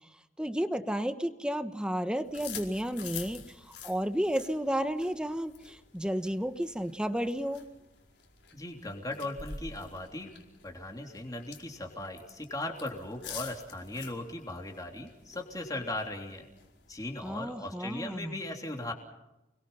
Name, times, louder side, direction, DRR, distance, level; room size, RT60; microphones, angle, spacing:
voice 1, 0.4-7.6 17.2-18.4, equal, 5° right, 9 dB, 1.1 m, -32 dB
sound 1, 2.3-17.2, left 6 dB, 90° left, 5.0 m, -48 dB
voice 2, 8.5-10.3 10.6-16.5 16.9-18.9, left 2 dB, 20° left, 2 dB, 3.4 m, -38 dB
30.0 x 22.0 x 5.7 m, 0.93 s
head